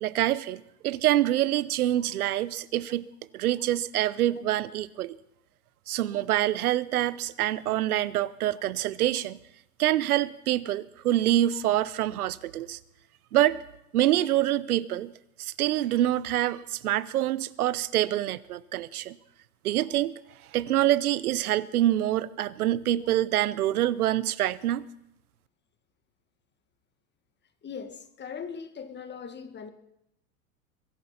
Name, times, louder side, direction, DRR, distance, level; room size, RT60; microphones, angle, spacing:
voice 1, 0.0-3.1 3.3-5.2 5.9-9.4 9.8-12.8 13.3-13.6 13.9-15.1 15.4-19.2 19.6-20.1 20.5-24.9, right 13 dB, 80° right, 0.8 m, -26 dB
voice 2, 27.6-29.7, left 6 dB, 25° left, 1.6 m, -40 dB
23.0 x 10.5 x 5.7 m
hypercardioid pair, 105°, 44 cm